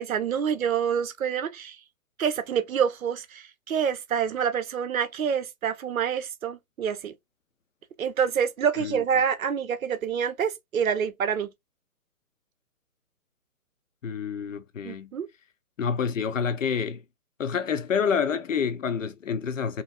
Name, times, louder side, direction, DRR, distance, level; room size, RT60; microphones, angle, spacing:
voice 1, 0.0-1.8 2.2-7.1 8.0-11.5 14.8-15.3, right 7 dB, 65° right, 0.6 m, -27 dB
voice 2, 14.0-15.1 15.8-17.0 17.4-19.8, left 6 dB, 60° left, 0.5 m, -28 dB
3.1 x 2.6 x 2.3 m
hypercardioid pair, 170°, 45 cm